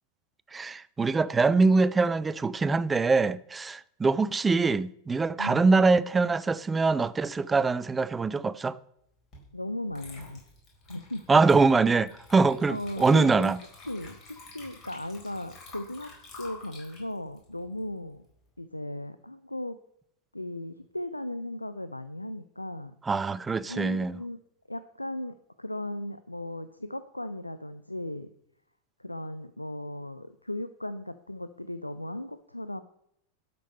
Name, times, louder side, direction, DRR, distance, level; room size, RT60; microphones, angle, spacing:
voice 1, 0.5-8.8 11.3-13.6 23.1-24.2, right 4 dB, 15° right, 0.4 m, -23 dB
Water / Liquid, 9.3-9.5 9.9-18.4, left 3 dB, 35° left, 4.4 m, -50 dB
voice 2, 9.5-10.4 10.9-11.4 12.7-13.5 13.9-14.2 14.5-16.1 16.4-18.2 18.6-19.8 20.3-22.9 23.7-24.4 24.7-28.3 29.0-32.8, left 1 dB, 85° left, 0.4 m, -36 dB
12.0 x 5.3 x 5.4 m
figure-of-eight pair, 90°, 0 cm